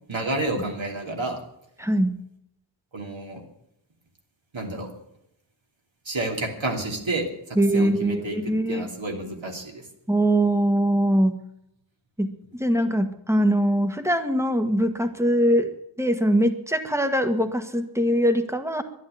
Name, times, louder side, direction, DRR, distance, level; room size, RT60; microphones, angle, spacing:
voice 1, 0.1-1.4 2.9-3.4 4.5-4.9 6.0-9.8, right 2 dB, 75° right, 1 dB, 3.0 m, -30 dB
voice 2, 1.8-2.2 7.5-8.9 10.1-11.4 12.2-15.7 16.0-18.8, equal, 5° right, 7 dB, 1.5 m, -22 dB
11.5 x 11.0 x 9.2 m, 0.78 s
wide cardioid pair, 65°, 47 cm